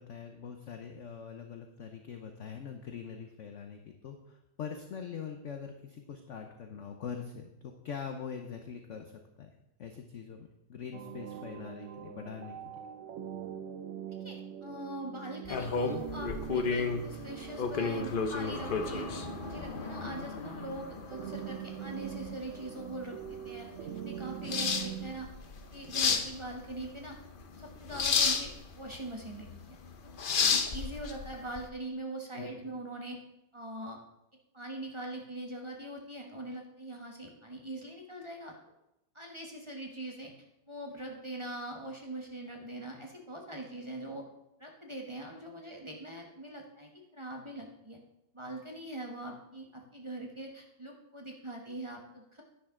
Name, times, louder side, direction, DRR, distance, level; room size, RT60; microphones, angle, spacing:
voice 1, 0.0-9.5 9.8-12.7 32.3-32.6, left 7 dB, 55° left, 5 dB, 0.8 m, -43 dB
sound 1, 10.9-25.1, right 9 dB, 85° right, 0.6 m, -43 dB
voice 2, 14.2-23.7 24.0-25.3 25.7-27.2 27.6-29.8 30.0-30.1 30.6-33.2 33.5-34.0 34.5-38.5 39.1-40.3 40.7-44.2 44.6-48.0 48.3-52.4, right 1 dB, 20° right, 0 dB, 1.0 m, -42 dB
sound 2, 15.4-31.6, left 5 dB, 80° left, 0.4 m, -33 dB
10.5 x 9.8 x 3.7 m, 0.89 s
omnidirectional pair, 2.1 m